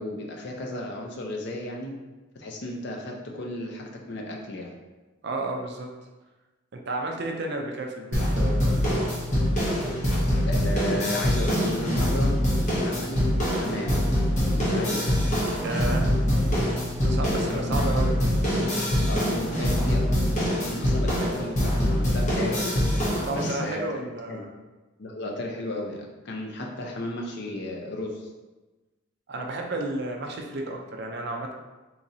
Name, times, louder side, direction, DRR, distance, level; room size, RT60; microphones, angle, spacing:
voice 1, 0.0-1.9 2.3-4.7 10.5-12.4 12.8-13.2 13.5-14.0 14.5-15.0 17.5-18.0 19.1-22.8 23.3-24.4 25.0-28.3, left 1 dB, 55° left, 0 dB, 0.5 m, -34 dB
voice 2, 5.2-5.9 6.7-9.1 15.6-16.1 17.0-18.2 23.0-24.5 29.3-31.5, right 2 dB, 50° right, 2 dB, 0.4 m, -32 dB
sound 1, 8.1-23.5, equal, 35° left, 0.9 m, -24 dB
3.9 x 3.0 x 2.7 m, 1.2 s
head